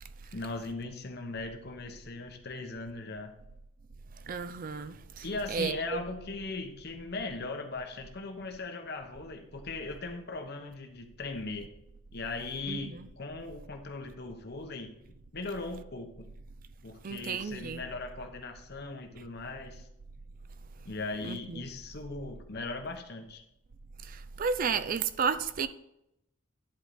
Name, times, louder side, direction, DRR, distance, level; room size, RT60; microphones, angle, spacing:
voice 1, 0.3-3.3 5.2-11.7 12.1-14.9 15.3-16.3 16.8-19.9 20.8-23.4, left 3 dB, 50° left, 1.1 m, -39 dB
voice 2, 4.3-6.0 12.7-13.1 17.0-17.8 21.2-21.6 24.0-25.7, right 6 dB, 40° right, 0.4 m, -33 dB
10.5 x 4.6 x 5.0 m
head